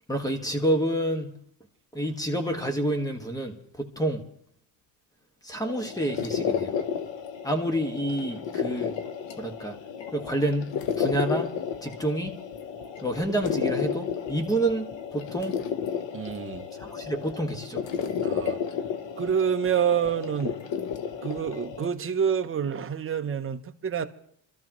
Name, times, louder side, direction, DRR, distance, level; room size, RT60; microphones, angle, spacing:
voice 1, 0.1-1.3 1.9-4.2 5.4-6.7 7.4-8.9 9.4-9.7 10.1-11.5 11.8-12.3 13.0-15.6 16.8-17.8, right 1 dB, 5° left, 1.6 m, -28 dB
sound 1, 5.6-21.9, left 7 dB, 60° left, 1.1 m, -32 dB
voice 2, 16.1-16.6 18.2-18.6 19.2-20.6 21.2-24.1, right 8 dB, 25° right, 0.8 m, -27 dB
26.0 x 13.0 x 3.1 m
cardioid pair, 135°, 49 cm